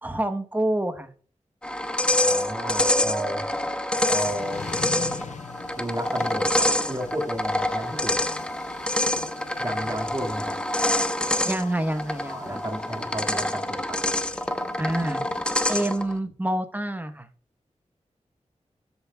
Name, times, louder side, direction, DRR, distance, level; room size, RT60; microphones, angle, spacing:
voice 1, 0.0-1.1 7.9-8.0 11.4-12.6 14.8-15.2 15.7-17.3, right 1 dB, 15° right, 9 dB, 1.0 m, -27 dB
sound 1, 1.6-16.1, left 1 dB, 10° left, 0.8 m, -26 dB
voice 2, 2.2-3.5 4.1-4.6 5.8-8.2 9.6-10.6 12.3-14.0, right 1 dB, 30° right, 3 dB, 2.0 m, -33 dB
sound 2, 4.2-15.9, left 5 dB, 70° left, 0.7 m, -43 dB
13.0 x 8.0 x 2.3 m, 0.43 s
wide cardioid pair, 85°, 13 cm